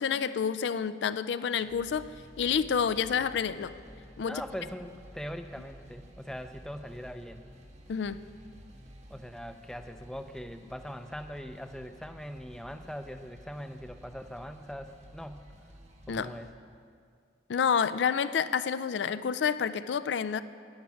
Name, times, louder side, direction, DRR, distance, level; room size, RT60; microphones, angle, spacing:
voice 1, 0.0-2.1 2.4-3.7 4.2-4.4 7.9-8.2 16.1-16.3 17.5-20.4, left 7 dB, 75° left, 15 dB, 0.4 m, -29 dB
sound 1, 1.5-16.5, equal, 35° right, 1.0 m, -52 dB
voice 2, 4.3-7.4 9.1-15.4 16.1-16.5, equal, 5° left, 8 dB, 0.4 m, -41 dB
10.5 x 10.5 x 5.8 m, 2.2 s
head